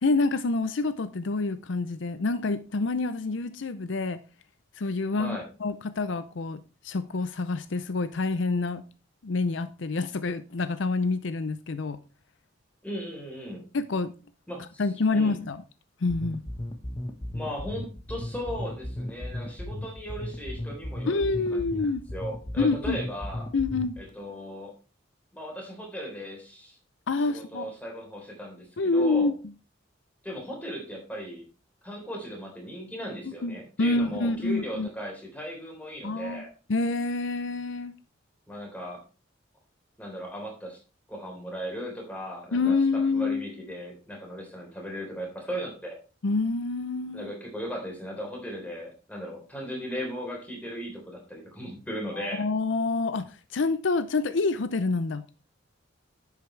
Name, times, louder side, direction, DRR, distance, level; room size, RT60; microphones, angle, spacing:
voice 1, 0.0-4.2 4.8-8.8 9.2-12.0 13.7-14.1 14.8-15.6 16.0-16.4 21.1-22.0 22.6-23.0 23.5-24.0 27.1-27.7 28.8-29.3 33.2-34.9 36.0-36.4 36.7-37.9 42.5-43.4 46.2-47.3 52.2-55.2, left 3 dB, 70° left, 0.6 m, -27 dB
voice 2, 5.1-5.5 12.8-13.6 14.5-14.8 15.1-15.4 17.3-21.2 21.5-23.5 24.0-24.7 25.3-26.8 27.2-29.3 30.2-31.4 31.8-36.5 38.5-39.0 40.0-40.8 41.1-46.0 47.1-52.5, equal, 10° left, 3.7 m, -37 dB
sound 1, 16.1-24.1, left 1 dB, 25° left, 1.0 m, -35 dB
10.5 x 8.2 x 3.3 m
head